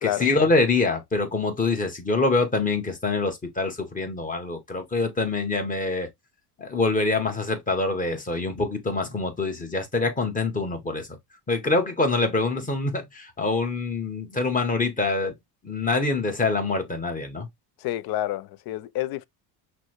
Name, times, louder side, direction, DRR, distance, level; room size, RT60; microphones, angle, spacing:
voice 1, 0.0-6.1 6.6-11.1 11.5-15.3 15.6-17.5, left 3 dB, 20° left, 1.2 m, -25 dB
voice 2, 17.8-19.3, left 14 dB, 55° left, 0.5 m, -29 dB
5.9 x 2.2 x 3.0 m
cardioid pair, 120°, 44 cm